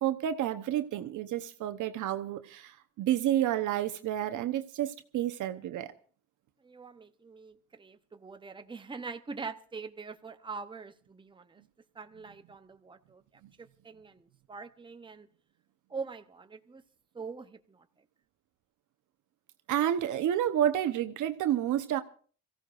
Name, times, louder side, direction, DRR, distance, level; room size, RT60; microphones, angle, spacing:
voice 1, 0.0-5.9 13.4-13.5 19.7-22.0, right 11 dB, 80° right, 1.0 m, -30 dB
voice 2, 6.6-11.6 11.9-13.2 13.6-14.2 14.5-15.3 15.9-16.8 17.1-17.9, right 4 dB, 15° right, 0.8 m, -43 dB
26.0 x 15.5 x 2.5 m
cardioid pair, 90°, 30 cm